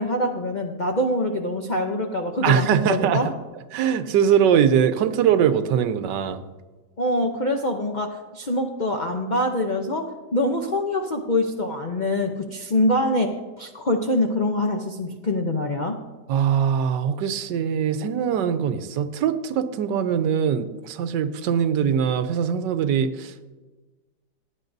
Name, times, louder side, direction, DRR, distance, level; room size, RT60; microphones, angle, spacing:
voice 1, 0.0-3.3 7.0-10.1 10.3-16.0, left 1 dB, 60° left, 3 dB, 0.4 m, -24 dB
voice 2, 2.4-3.2 3.7-6.4 16.3-23.5, right 8 dB, 90° right, 11 dB, 1.3 m, -22 dB
16.5 x 9.8 x 2.6 m, 1.2 s
omnidirectional pair, 1.9 m